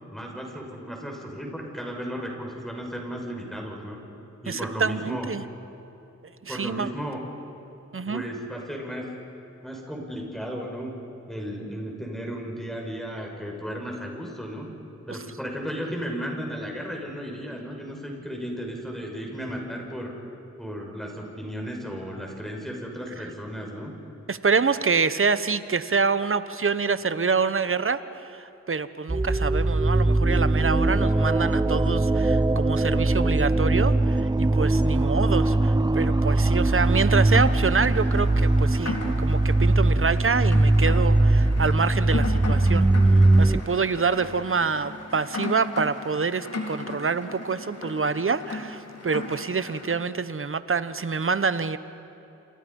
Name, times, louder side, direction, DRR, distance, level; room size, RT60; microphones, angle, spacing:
voice 1, 0.1-4.0 4.4-5.3 6.5-7.2 8.1-9.1 9.6-10.9 11.3-14.7 15.1-20.1 20.6-23.9, equal, ahead, 0 dB, 5.7 m, -34 dB
voice 2, 4.5-5.4 6.4-6.9 7.9-8.2 15.1-15.2 24.3-42.9 43.4-51.8, right 5 dB, 45° right, 13 dB, 1.1 m, -26 dB
sound 1, 29.1-43.6, right 2 dB, 15° right, 0.7 m, -21 dB
Rain, 36.7-50.0, left 3 dB, 55° left, 3.8 m, -37 dB
28.5 x 27.5 x 5.5 m, 2.9 s
cardioid pair, 60°, 30 cm